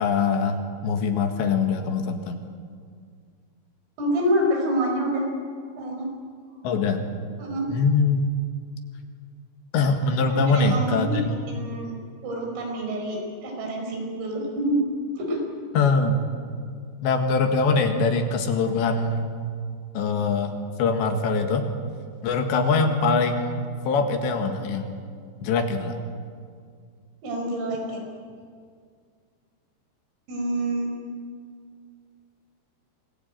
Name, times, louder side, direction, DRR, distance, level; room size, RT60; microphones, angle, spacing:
voice 1, 0.0-2.4 6.6-7.0 7.7-8.3 9.7-11.4 15.8-16.2 17.0-19.2 20.0-21.7 22.2-25.0 25.4-26.0, left 4 dB, 70° left, 5 dB, 3.8 m, -23 dB
voice 2, 4.0-5.3 5.8-6.1 7.4-7.7 10.3-11.2 11.5-11.9 12.2-14.8 15.2-15.4 27.2-28.0 30.3-30.9, right 1 dB, 85° right, 1 dB, 7.8 m, -27 dB
27.0 x 20.0 x 9.1 m, 2.1 s
omnidirectional pair, 5.7 m